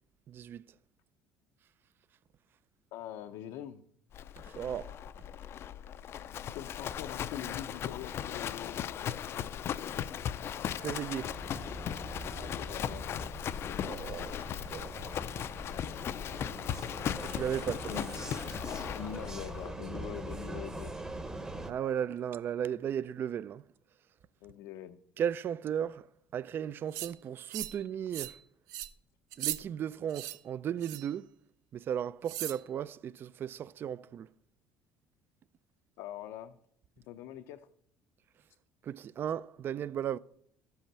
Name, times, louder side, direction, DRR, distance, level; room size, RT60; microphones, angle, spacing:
voice 1, 0.3-0.6 4.4-5.0 10.8-11.3 13.9-14.4 14.7-15.0 17.2-18.1 21.6-23.6 25.2-26.1 26.3-28.4 29.4-31.3 31.7-34.3 38.8-40.2, right 9 dB, 35° right, 0.3 m, -35 dB
voice 2, 2.9-3.8 6.5-9.1 12.3-13.4 15.6-16.4 17.9-18.1 19.0-20.9 24.4-25.0 36.0-36.6 37.1-37.7, left 11 dB, 80° left, 0.7 m, -44 dB
Livestock farm animals working animals, 4.1-19.7, left 9 dB, 45° left, 0.4 m, -38 dB
Vehicle, 11.2-21.7, right 1 dB, 10° right, 0.8 m, -43 dB
sound 1, 26.9-27.1 27.5-27.8 28.1-28.4 28.7-28.9 29.3-29.6 30.1-30.4 30.8-31.1 32.3-32.6, right 14 dB, 80° right, 0.8 m, -37 dB
13.0 x 5.6 x 7.3 m
cardioid pair, 130°, 6 cm